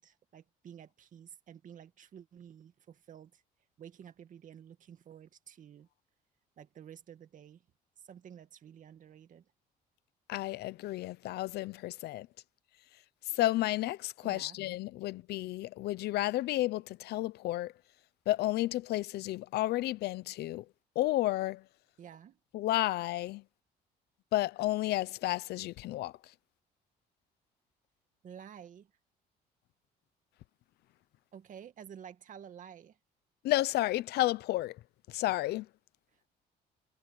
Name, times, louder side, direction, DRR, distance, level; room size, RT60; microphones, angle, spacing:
voice 1, 0.0-3.4 3.8-5.9 6.6-7.6 8.1-9.5 14.2-14.6 22.0-22.4 28.2-28.9 31.3-33.0, right 9 dB, 50° right, 2.1 m, -51 dB
voice 2, 10.3-12.3 13.3-17.7 18.3-20.6 21.0-21.6 22.5-23.4 24.3-26.1 33.4-34.8 35.1-35.7, left 16 dB, 75° left, 0.7 m, -32 dB
cardioid pair, 110°, 17 cm